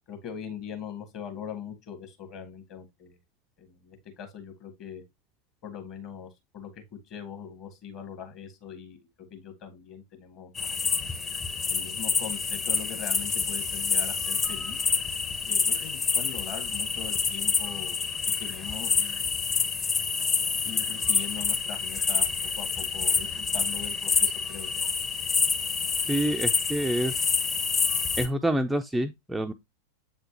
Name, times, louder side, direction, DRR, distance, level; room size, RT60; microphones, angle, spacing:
voice 1, 0.1-3.2 3.6-5.0 5.6-9.0 9.3-11.1 11.7-14.8 15.4-18.1 18.4-19.4 20.6-24.7, left 8 dB, 40° left, 1.8 m, -41 dB
sound 1, 10.6-28.3, left 5 dB, 20° left, 0.9 m, -27 dB
voice 2, 26.1-27.2 28.2-29.5, right 1 dB, 5° right, 0.4 m, -27 dB
7.8 x 4.4 x 2.9 m
figure-of-eight pair, 90°, 0 cm